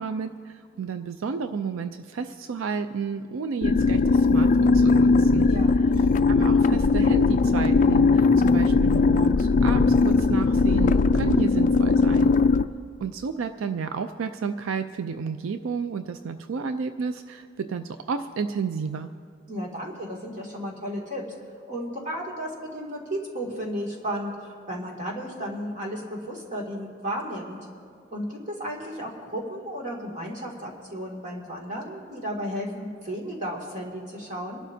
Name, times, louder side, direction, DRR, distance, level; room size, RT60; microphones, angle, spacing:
voice 1, 0.0-5.5 6.3-12.3 13.0-19.1, right 5 dB, 85° right, 9 dB, 0.4 m, -31 dB
sound 1, 3.6-12.7, left 4 dB, 40° left, 0.3 m, -19 dB
voice 2, 5.4-5.8 19.5-21.2 21.7-27.6 28.1-34.6, equal, 40° right, -2 dB, 2.3 m, -33 dB
25.5 x 11.5 x 2.7 m, 2.3 s
head